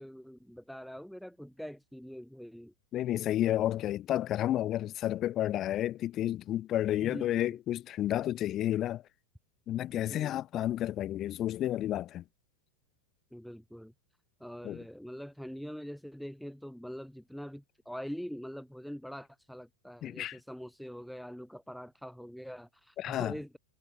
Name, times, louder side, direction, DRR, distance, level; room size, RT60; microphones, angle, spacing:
voice 1, 0.0-2.7 7.0-7.6 9.9-10.4 13.3-13.9 14.4-23.6, equal, ahead, 2.6 m, -44 dB
voice 2, 2.9-9.0 9.7-12.2 14.6-14.8 20.0-20.4 23.0-23.3, left 13 dB, 30° left, 1.2 m, -31 dB
figure-of-eight pair, 90°, 0 cm